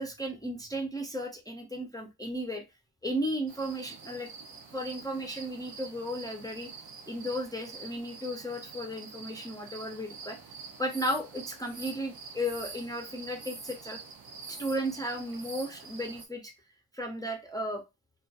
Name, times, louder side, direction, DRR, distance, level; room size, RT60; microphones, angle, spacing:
voice 1, 0.0-2.6 3.0-4.3 4.7-6.7 7.1-10.4 10.8-14.0 14.5-16.5 16.9-17.8, equal, 10° left, 0.3 m, -34 dB
sound 1, 3.5-16.2, right 5 dB, 75° right, 0.6 m, -47 dB
sound 2, 10.9-11.2 11.6-12.9 13.4-13.8 14.4-14.8 15.3-15.7 16.2-16.3, right 2 dB, 35° right, 0.6 m, -46 dB
2.6 x 2.2 x 2.3 m
wide cardioid pair, 175°, 37 cm